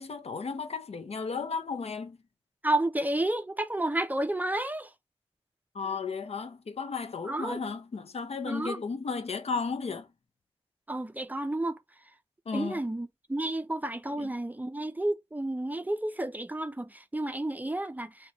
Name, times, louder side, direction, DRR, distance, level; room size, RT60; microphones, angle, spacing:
voice 1, 0.0-2.2 5.7-10.1 12.5-12.8 14.2-14.3, left 5 dB, 75° left, 0.5 m, -34 dB
voice 2, 2.6-4.9 7.2-7.6 8.4-8.8 10.9-11.8 12.5-18.3, right 1 dB, 15° right, 0.4 m, -31 dB
4.0 x 2.2 x 2.8 m
wide cardioid pair, 90°, 11 cm